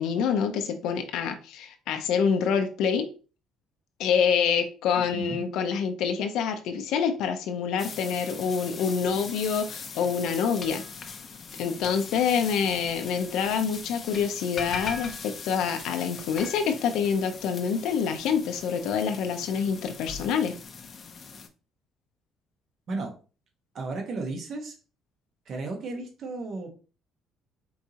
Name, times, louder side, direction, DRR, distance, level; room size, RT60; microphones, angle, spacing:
voice 1, 0.0-3.1 4.0-10.8 11.6-20.5, left 6 dB, 70° left, 6 dB, 0.5 m, -26 dB
voice 2, 5.0-5.4 22.9-23.1 23.7-24.7 25.4-26.7, right 3 dB, 40° right, 2 dB, 1.1 m, -34 dB
sound 1, 7.8-21.5, left 5 dB, 25° left, 0.6 m, -40 dB
4.5 x 4.0 x 2.8 m, 0.35 s
cardioid pair, 175°, 0 cm